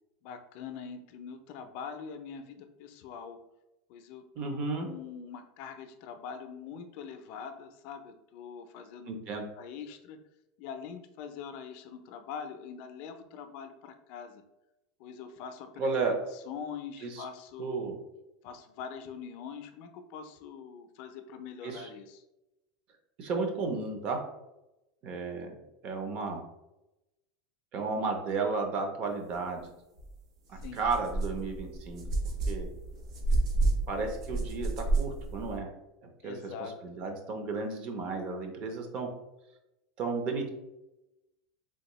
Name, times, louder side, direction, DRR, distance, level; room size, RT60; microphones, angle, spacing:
voice 1, 0.2-3.4 3.9-9.1 9.6-10.2 10.6-14.4 15.0-17.9 18.4-22.2 30.6-30.8 36.2-36.8, left 6 dB, 50° left, 7 dB, 0.4 m, -43 dB
voice 2, 4.4-4.9 9.1-9.5 15.8-16.1 17.0-17.2 17.6-18.0 21.6-21.9 23.2-24.2 25.0-25.5 25.8-26.4 27.7-29.7 30.5-32.0 32.5-32.7 33.9-35.7 36.2-36.3 36.8-39.1 40.0-40.5, right 4 dB, 35° right, 3 dB, 0.6 m, -33 dB
sound 1, 30.0-30.1 30.5-35.6, right 2 dB, 75° right, 0.8 m, -30 dB
3.4 x 2.6 x 3.0 m, 0.95 s
supercardioid pair, 160°, 3 cm